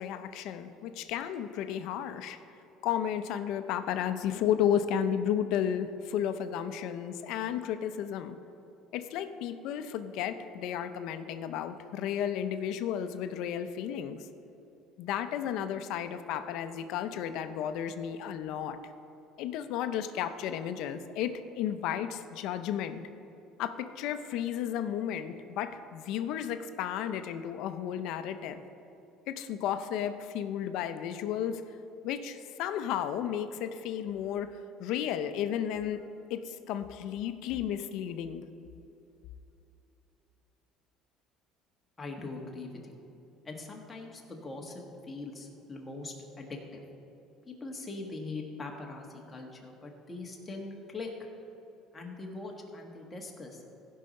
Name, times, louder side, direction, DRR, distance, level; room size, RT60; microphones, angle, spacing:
voice 1, 0.0-2.4 2.8-8.4 8.9-14.2 15.0-18.8 19.4-23.0 23.6-28.6 29.3-31.6 32.0-38.4, left 9 dB, 70° left, 10 dB, 0.6 m, -33 dB
voice 2, 42.0-42.9 43.4-46.8 47.5-51.1 51.9-53.6, left 3 dB, 20° left, 0 dB, 1.6 m, -42 dB
16.0 x 5.6 x 5.3 m, 2.8 s
cardioid pair, 125°, 0 cm